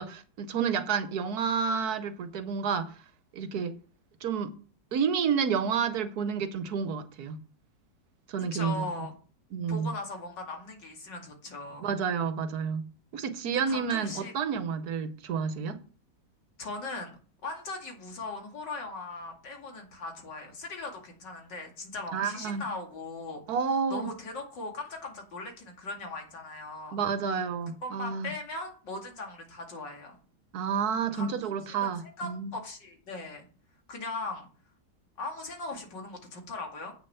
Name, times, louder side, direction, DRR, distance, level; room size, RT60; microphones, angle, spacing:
voice 1, 0.0-2.9 3.3-3.8 4.2-4.5 4.9-7.4 8.3-8.9 9.5-9.9 11.8-15.8 22.1-22.6 23.5-24.1 26.9-28.3 30.5-32.5, right 6 dB, 65° right, 1.3 m, -30 dB
voice 2, 8.4-9.1 9.7-11.9 13.7-14.3 16.6-17.2 17.4-23.4 23.9-27.0 27.8-30.2 31.1-31.3 31.8-33.4 33.9-34.5 35.2-36.9, left 2 dB, 85° left, 2.9 m, -39 dB
8.4 x 6.7 x 5.6 m
omnidirectional pair, 1.9 m